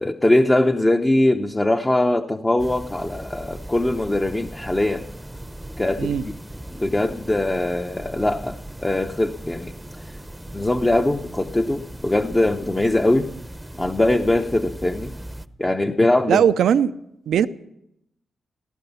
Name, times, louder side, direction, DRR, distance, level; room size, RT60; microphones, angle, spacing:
voice 1, 0.0-5.1 5.8-6.3 6.7-9.7 10.5-13.3 13.8-15.1 15.6-16.4, left 1 dB, 20° left, 0.9 m, -21 dB
sound 1, 2.6-15.5, right 1 dB, 10° right, 0.8 m, -38 dB
voice 2, 16.3-16.9 17.3-17.5, right 8 dB, 80° right, 0.5 m, -18 dB
16.5 x 14.5 x 5.7 m
supercardioid pair, 50°, 0 cm